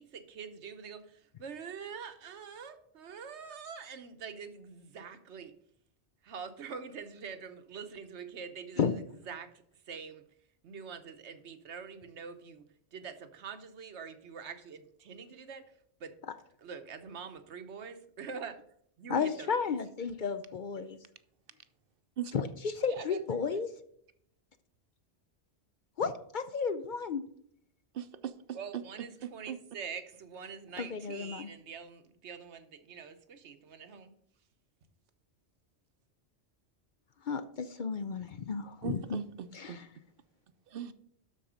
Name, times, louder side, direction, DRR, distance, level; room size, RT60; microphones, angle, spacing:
voice 1, 0.0-5.6 6.2-8.9 9.3-10.3 10.6-15.7 16.0-16.2 16.6-18.6 19.0-19.7 22.9-23.6 28.5-34.1, right 6 dB, 85° right, 1.2 m, -45 dB
voice 2, 19.1-21.0 22.3-23.7 26.0-27.2 30.8-31.5 37.3-39.2 39.5-39.8, left 5 dB, 55° left, 0.6 m, -33 dB
voice 3, 27.9-28.3 29.2-29.6 38.8-39.8 40.7-40.9, right 9 dB, 60° right, 0.8 m, -39 dB
12.0 x 4.2 x 5.0 m
omnidirectional pair, 1.1 m